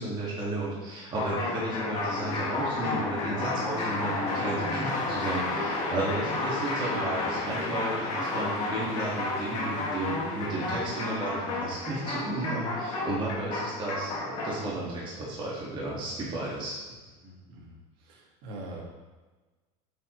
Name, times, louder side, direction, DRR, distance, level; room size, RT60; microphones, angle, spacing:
voice 1, 0.0-16.8, right 2 dB, 25° right, -6 dB, 2.1 m, -33 dB
sound 1, 1.1-14.7, left 2 dB, 40° left, 1.9 m, -31 dB
voice 2, 17.2-18.8, right 1 dB, 65° right, -2 dB, 1.9 m, -44 dB
8.5 x 4.6 x 3.2 m, 1.2 s
supercardioid pair, 130°, 17 cm